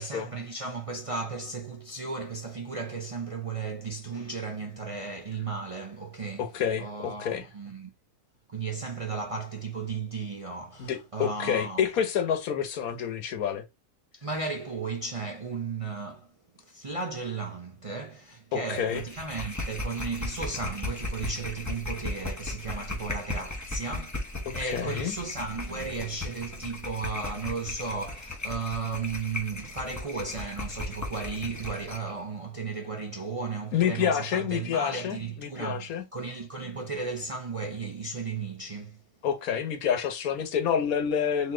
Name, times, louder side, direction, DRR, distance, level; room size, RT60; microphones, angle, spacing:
voice 1, 0.0-6.5 6.8-7.9 8.5-11.8 14.1-16.3 16.7-39.0, right 4 dB, 40° right, 0.4 m, -35 dB
voice 2, 6.4-7.5 10.8-13.6 18.5-19.0 24.6-25.1 33.7-36.0 39.2-41.5, left 8 dB, 90° left, 1.3 m, -28 dB
sound 1, 18.7-32.1, left 2 dB, 15° left, 0.9 m, -36 dB
4.2 x 2.8 x 3.8 m
omnidirectional pair, 1.5 m